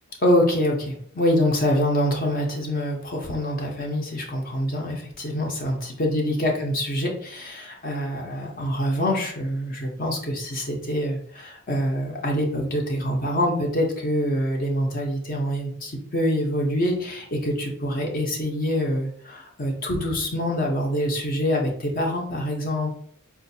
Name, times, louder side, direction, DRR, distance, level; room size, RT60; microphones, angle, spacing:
voice 1, 0.2-22.9, equal, 40° left, 0 dB, 0.6 m, -25 dB
4.6 x 2.4 x 2.6 m, 0.62 s
head